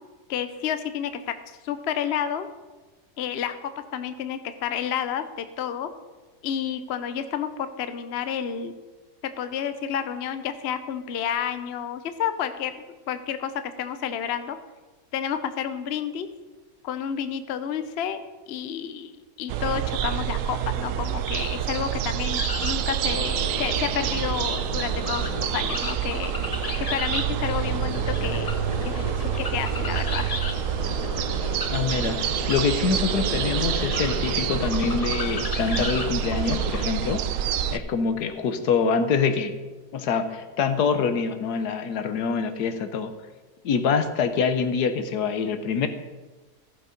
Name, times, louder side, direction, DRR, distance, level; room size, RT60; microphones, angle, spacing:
voice 1, 0.3-2.5 3.2-5.9 6.4-8.8 9.2-13.5 13.8-14.6 15.1-16.3 16.8-18.2 18.5-19.1 19.4-26.3 26.8-28.5 28.8-30.3, left 8 dB, 55° left, 10 dB, 0.8 m, -30 dB
sound 1, 19.5-37.8, right 10 dB, 65° right, 0.9 m, -27 dB
sound 2, 22.2-36.9, left 3 dB, 25° left, 0.9 m, -34 dB
voice 2, 31.7-37.3 37.7-39.5 39.9-43.1 43.6-45.9, left 5 dB, 75° left, 9 dB, 1.5 m, -25 dB
15.0 x 7.4 x 5.2 m, 1.2 s
omnidirectional pair, 1.7 m